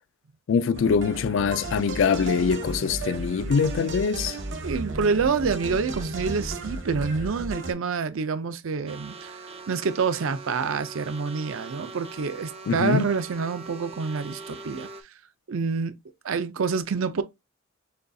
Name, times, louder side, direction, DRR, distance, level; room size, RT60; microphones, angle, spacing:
voice 1, 0.5-4.4 12.7-13.0, left 5 dB, 65° left, 0.3 m, -23 dB
sound 1, 0.7-7.7, right 2 dB, 60° right, 0.9 m, -34 dB
voice 2, 4.6-9.4 9.7-14.9 15.5-15.9 16.2-17.2, right 5 dB, 75° right, 0.5 m, -27 dB
sound 2, 8.9-15.0, right 3 dB, 30° right, 0.5 m, -42 dB
6.5 x 2.3 x 2.6 m
head